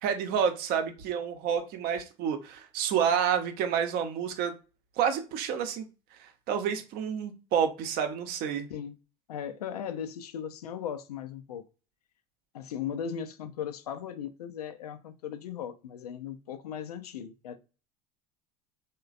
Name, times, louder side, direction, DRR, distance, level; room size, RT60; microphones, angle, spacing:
voice 1, 0.0-4.5 5.0-5.9 6.2-8.7, right 8 dB, 55° right, 0.6 m, -29 dB
voice 2, 9.3-11.6 12.5-17.6, left 8 dB, 80° left, 0.4 m, -37 dB
3.1 x 2.2 x 2.4 m
hypercardioid pair, 70°, 19 cm